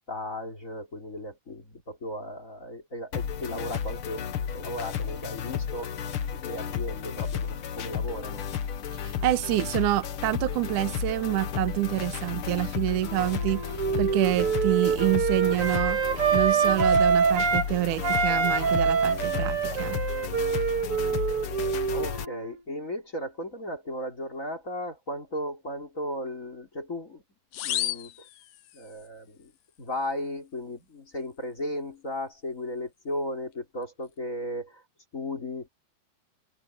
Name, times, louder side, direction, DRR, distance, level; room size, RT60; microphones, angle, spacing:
voice 1, 0.1-4.3 4.5-5.9 6.3-8.5 21.9-27.2 27.6-28.1 28.7-29.5 29.8-34.8 35.1-35.7, left 1 dB, 25° left, 3.4 m, -35 dB
sound 1, 3.1-22.3, left 8 dB, 60° left, 1.4 m, -33 dB
voice 2, 9.0-13.6 14.0-16.0 16.3-20.0, right 16 dB, 75° right, 2.3 m, -27 dB
Wind instrument woodwind instrument, 13.2-17.7 18.0-22.5, right 6 dB, 45° right, 2.7 m, -25 dB
sound 2, 27.5-29.1, left 14 dB, 85° left, 2.7 m, -33 dB
omnidirectional pair, 3.9 m